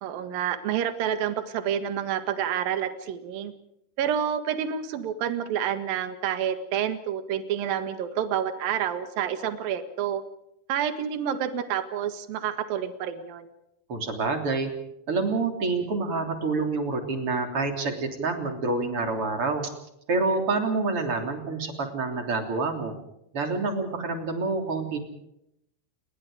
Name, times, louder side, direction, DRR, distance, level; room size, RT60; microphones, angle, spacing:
voice 1, 0.0-3.5 4.0-10.2 10.7-13.5, right 9 dB, 60° right, 9 dB, 3.0 m, -28 dB
voice 2, 13.9-14.7 15.1-19.7 20.1-22.9 23.3-25.0, right 3 dB, 35° right, 4 dB, 3.5 m, -27 dB
29.0 x 22.0 x 5.0 m, 0.80 s
omnidirectional pair, 5.5 m